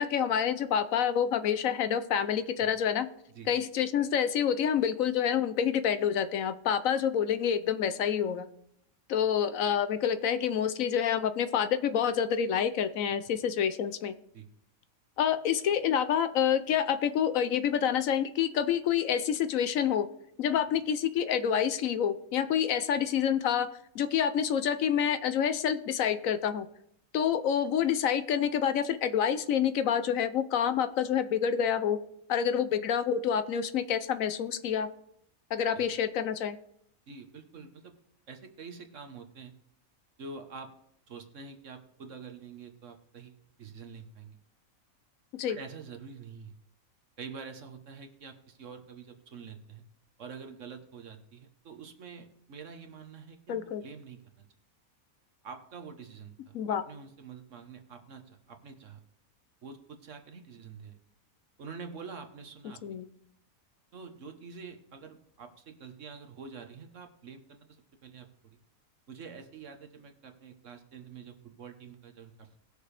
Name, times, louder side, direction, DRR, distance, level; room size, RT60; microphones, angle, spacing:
voice 1, 0.0-3.1 3.5-8.5 9.1-14.1 15.2-20.1 20.4-23.7 23.9-26.7 27.1-32.0 32.3-34.9 35.5-36.6 45.4-45.6 53.5-53.8 56.5-56.8 62.8-63.0, left 8 dB, 70° left, 11 dB, 1.0 m, -28 dB
voice 2, 37.1-38.0 38.3-39.5 40.2-40.7 41.1-44.4 45.5-46.6 47.2-49.8 50.2-54.4 55.4-59.0 59.6-61.0 61.6-62.8 63.9-68.6 69.1-72.6, right 5 dB, 60° right, 6 dB, 1.4 m, -46 dB
19.5 x 6.6 x 3.3 m, 0.72 s
omnidirectional pair, 1.5 m